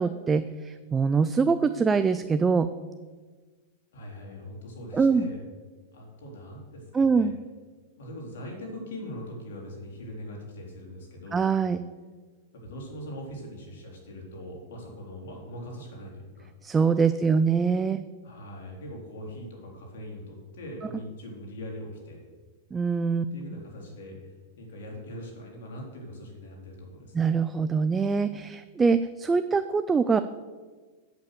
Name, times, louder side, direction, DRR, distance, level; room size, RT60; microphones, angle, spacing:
voice 1, 0.0-2.7 4.9-5.3 6.9-7.3 11.3-11.8 16.6-18.0 22.7-23.3 27.1-30.2, right 5 dB, 15° right, 11 dB, 0.4 m, -23 dB
voice 2, 3.9-5.4 5.9-7.3 8.0-11.5 12.5-16.5 17.2-17.5 18.2-22.2 23.3-24.2 24.6-27.4, equal, 80° left, -1 dB, 3.6 m, -41 dB
8.4 x 8.2 x 6.6 m, 1.4 s
hypercardioid pair, 130°, 0 cm